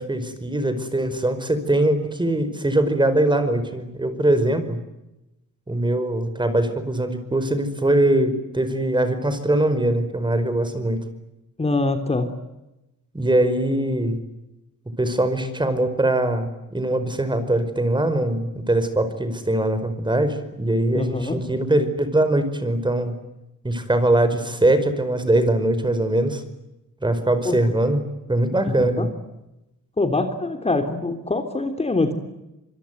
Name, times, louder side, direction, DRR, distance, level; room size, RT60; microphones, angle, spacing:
voice 1, 0.0-4.8 5.7-11.0 13.1-14.2 15.0-23.2 23.6-26.4 27.0-28.0 28.3-29.1, right 1 dB, 15° right, 11 dB, 5.1 m, -22 dB
voice 2, 11.6-12.3 20.9-21.4 27.4-27.6 28.7-29.1 30.0-32.1, left 2 dB, 20° left, 6 dB, 3.5 m, -24 dB
26.0 x 23.0 x 9.3 m, 0.93 s
cardioid pair, 90°, 30 cm